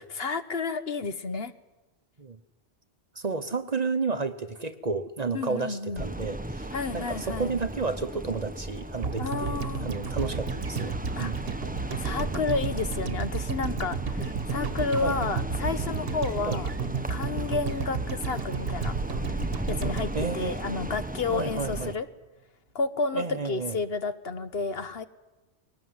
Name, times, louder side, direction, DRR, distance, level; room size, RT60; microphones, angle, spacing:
voice 1, 0.0-1.5 5.3-6.0 6.7-7.5 9.2-9.8 11.2-11.3 12.0-16.7 17.1-18.9 19.2-19.3 19.7-22.1 22.7-25.0, left 4 dB, 60° left, 12 dB, 1.3 m, -31 dB
voice 2, 3.1-11.5 15.0-15.2 16.4-16.6 20.1-20.6 21.3-22.0 23.1-23.8, right 4 dB, 40° right, 10 dB, 0.9 m, -32 dB
sound 1, 6.0-21.9, right 1 dB, 10° right, 0.7 m, -35 dB
sound 2, 9.0-21.2 21.5-21.6, right 5 dB, 55° right, 1.3 m, -33 dB
21.5 x 18.5 x 9.5 m, 1.1 s
omnidirectional pair, 1.2 m